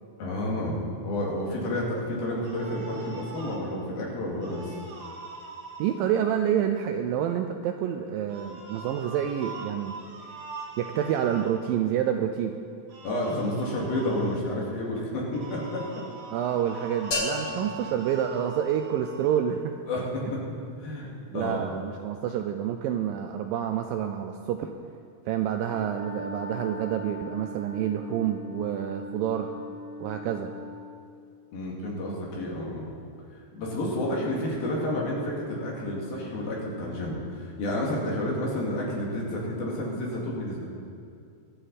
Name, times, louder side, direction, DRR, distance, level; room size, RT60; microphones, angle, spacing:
voice 1, 0.2-4.7 13.0-15.8 19.9-20.4 20.8-21.1 21.3-21.7 31.5-32.9 33.5-40.6, left 1 dB, 70° left, -3 dB, 4.2 m, -30 dB
sound 1, 2.4-3.6 4.4-6.0 8.3-11.5 12.9-14.4 15.3-19.4, right 4 dB, 45° right, 2.3 m, -43 dB
voice 2, 5.8-10.0 10.8-12.6 16.3-19.8 21.3-24.7 25.3-29.5 30.0-30.6, right 9 dB, 80° right, 6 dB, 2.1 m, -28 dB
sound 2, 17.1-19.1, left 2 dB, 40° left, 3.6 m, -34 dB
Wind instrument woodwind instrument, 25.7-31.1, equal, 85° left, 3.5 m, -40 dB
23.0 x 7.9 x 4.2 m, 2.5 s
omnidirectional pair, 4.5 m